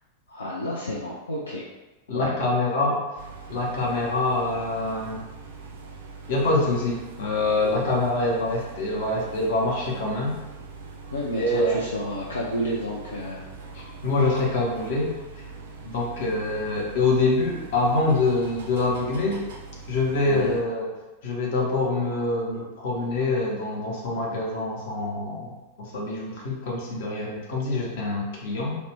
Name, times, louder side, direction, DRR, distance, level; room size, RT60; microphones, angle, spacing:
voice 1, 0.3-1.6 2.1-2.3 11.1-13.5 20.2-20.6, equal, 75° left, -5 dB, 0.4 m, -31 dB
voice 2, 2.1-3.0 3.5-5.2 6.3-10.4 11.4-11.8 13.7-15.1 15.8-19.4 19.9-20.9 21.2-25.5 25.8-28.8, left 2 dB, 55° left, -2 dB, 0.7 m, -25 dB
sound 1, 3.2-20.6, right 4 dB, 60° right, 0.4 m, -42 dB
2.4 x 2.0 x 3.3 m, 1.1 s
figure-of-eight pair, 90°, 0 cm